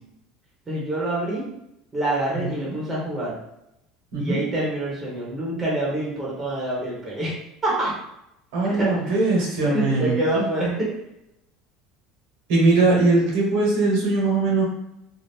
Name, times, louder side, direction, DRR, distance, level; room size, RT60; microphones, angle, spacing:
voice 1, 0.7-1.5 1.9-3.4 4.2-7.3 7.6-7.9 8.6-9.2 9.6-10.9, right 1 dB, 15° right, -5 dB, 0.8 m, -26 dB
voice 2, 2.3-2.8 4.1-4.4 8.5-10.2 12.5-14.6, right 3 dB, 75° right, -2 dB, 1.1 m, -21 dB
2.6 x 2.4 x 3.4 m, 0.81 s
cardioid pair, 170°, 0 cm